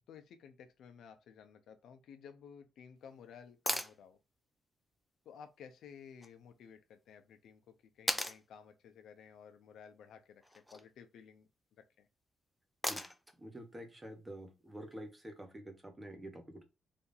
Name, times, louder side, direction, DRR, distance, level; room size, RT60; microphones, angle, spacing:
voice 1, 0.1-4.2 5.2-11.5 12.0-12.1, left 7 dB, 80° left, 0.7 m, -55 dB
sound 1, 3.7-4.0 6.2-6.3 8.1-8.4 10.4-10.8 12.8-13.3 15.4-15.5, left 1 dB, 5° left, 0.5 m, -36 dB
voice 2, 13.4-16.6, right 1 dB, 15° right, 1.1 m, -48 dB
3.5 x 2.7 x 4.0 m
cardioid pair, 100°, 0 cm